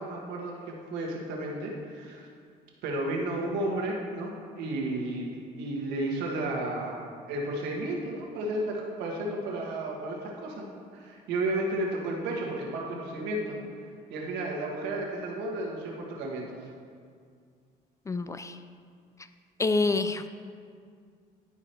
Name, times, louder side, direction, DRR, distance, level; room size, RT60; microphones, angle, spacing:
voice 1, 0.0-2.3 2.8-10.7 10.9-13.5 14.1-16.6, right 1 dB, 90° right, -1 dB, 1.5 m, -33 dB
voice 2, 18.1-18.6 19.6-20.3, left 3 dB, 20° left, 10 dB, 0.3 m, -27 dB
11.0 x 4.9 x 4.4 m, 2.2 s
cardioid pair, 110°, 17 cm